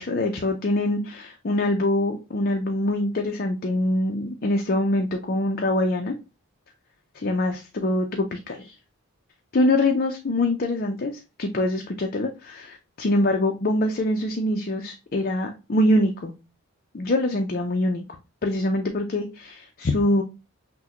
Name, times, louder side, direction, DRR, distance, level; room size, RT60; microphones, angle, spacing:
voice 1, 0.0-6.1 7.1-8.7 9.5-16.3 16.9-18.0 18.4-20.2, left 1 dB, 40° left, 3 dB, 0.4 m, -24 dB
6.0 x 2.1 x 2.9 m, 0.29 s
head